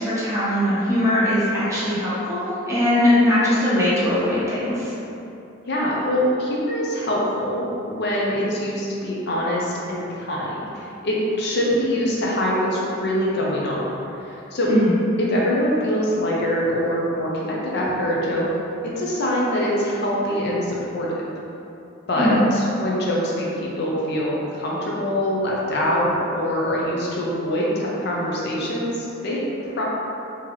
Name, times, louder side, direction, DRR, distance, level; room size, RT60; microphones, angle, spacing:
voice 1, 0.0-4.9 14.7-14.9 22.1-22.4, left 1 dB, 15° right, -10 dB, 0.9 m, -20 dB
voice 2, 5.7-13.8 14.2-14.7 15.2-18.5 18.9-21.1 22.1-29.8, equal, 55° left, -5 dB, 0.6 m, -24 dB
3.7 x 2.9 x 3.0 m, 2.9 s
head